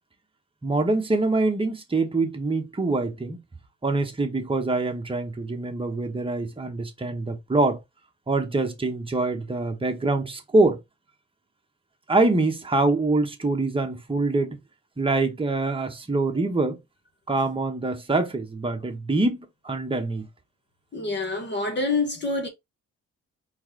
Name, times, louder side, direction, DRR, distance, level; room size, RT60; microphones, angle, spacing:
voice 1, 0.6-3.4 3.8-7.8 8.3-10.8 12.1-14.6 15.0-16.8 17.3-20.3, right 2 dB, 15° right, 1.3 m, -24 dB
voice 2, 20.9-22.5, left 3 dB, 35° left, 1.5 m, -26 dB
4.6 x 3.7 x 3.0 m
cardioid pair, 90°, 30 cm